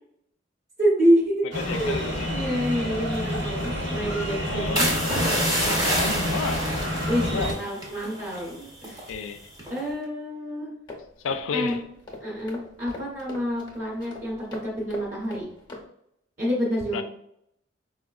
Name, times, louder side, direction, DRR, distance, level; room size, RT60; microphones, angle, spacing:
voice 1, 0.8-4.9 5.4-5.8 7.0-9.1 9.7-10.7 11.5-11.8 12.2-15.5 16.4-17.0, equal, 40° right, 0.9 m, -27 dB
voice 2, 1.5-2.3 4.5-6.7 7.2-7.6 9.1-9.4 11.2-11.8 16.9-17.0, left 5 dB, 90° left, 0.4 m, -32 dB
sound 1, 1.5-7.5, equal, 80° right, 1.1 m, -29 dB
sound 2, 4.8-8.5 8.8-9.1 9.6-9.9, right 1 dB, 20° right, 0.7 m, -27 dB
sound 3, 10.9-15.8, left 2 dB, 25° left, 0.7 m, -42 dB
4.6 x 2.2 x 2.3 m
head